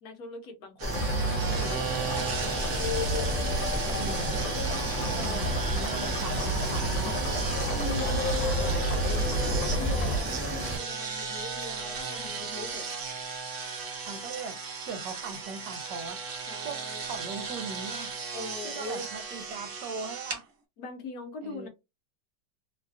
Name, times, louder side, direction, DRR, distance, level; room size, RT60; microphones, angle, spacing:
voice 1, 0.0-2.9 5.1-5.5 7.7-12.8 16.5-17.1 18.3-19.1 20.8-21.7, left 3 dB, 60° left, 1.2 m, -41 dB
sound 1, 0.8-10.8, right 1 dB, 10° right, 0.7 m, -34 dB
sound 2, 0.8-20.4, right 4 dB, 50° right, 1.1 m, -36 dB
sound 3, 0.9-10.2, equal, 85° left, 1.3 m, -31 dB
voice 2, 4.0-4.4 5.2-7.2 14.0-14.6 14.9-16.2 16.6-16.8 17.1-18.2 18.6-20.5 21.4-21.7, right 4 dB, 75° right, 1.3 m, -39 dB
3.2 x 2.4 x 2.4 m
omnidirectional pair, 2.0 m